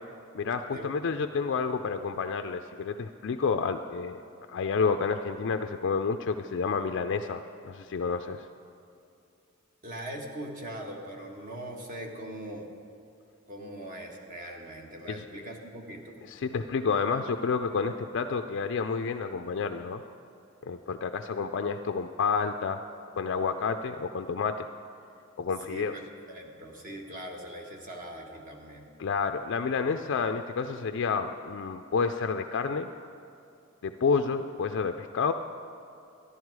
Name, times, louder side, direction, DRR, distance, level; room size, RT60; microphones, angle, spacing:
voice 1, 0.3-4.2 4.5-8.5 15.1-15.2 16.3-20.0 20.7-22.8 23.2-24.7 25.4-25.9 29.0-32.9 33.8-35.3, left 5 dB, 60° left, 7 dB, 0.4 m, -29 dB
voice 2, 9.8-12.7 13.5-16.2 25.7-25.9 26.3-28.9, right 1 dB, 40° right, 1 dB, 1.5 m, -41 dB
13.5 x 11.0 x 4.7 m, 2.6 s
head